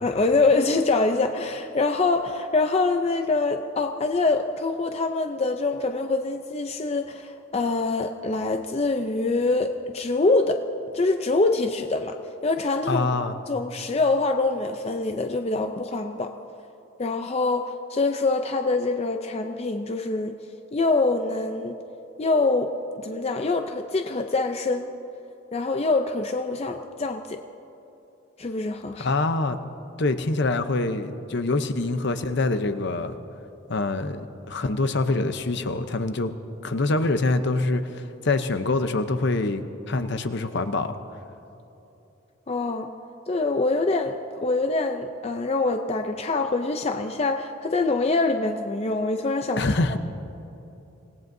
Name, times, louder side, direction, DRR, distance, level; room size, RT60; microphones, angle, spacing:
voice 1, 0.0-10.6 10.9-13.2 13.5-16.3 17.0-20.4 20.7-21.8 22.2-24.9 25.5-27.4 28.4-29.1 42.5-42.9 43.3-49.7, left 3 dB, 30° left, 5 dB, 0.5 m, -25 dB
voice 2, 12.9-13.3 29.0-29.6 30.0-33.1 33.7-36.3 36.6-40.9 49.6-50.0, left 2 dB, 55° left, 9 dB, 0.7 m, -25 dB
26.0 x 17.5 x 2.7 m, 2.9 s
head